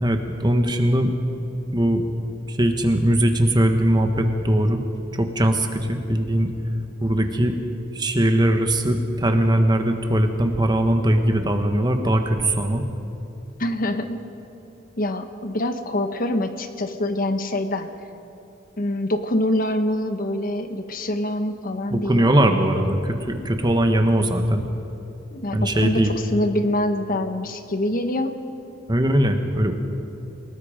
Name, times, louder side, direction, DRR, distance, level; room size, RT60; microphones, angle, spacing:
voice 1, 0.0-1.1 1.7-2.0 2.5-4.8 5.1-6.5 7.0-7.6 7.9-12.8 21.9-24.6 25.5-26.1 28.9-29.7, right 1 dB, 20° right, 5 dB, 1.4 m, -20 dB
voice 2, 13.6-14.2 15.0-17.9 18.8-22.3 25.3-28.4, left 1 dB, 45° left, 8 dB, 1.2 m, -25 dB
28.0 x 18.5 x 5.1 m, 2.8 s
head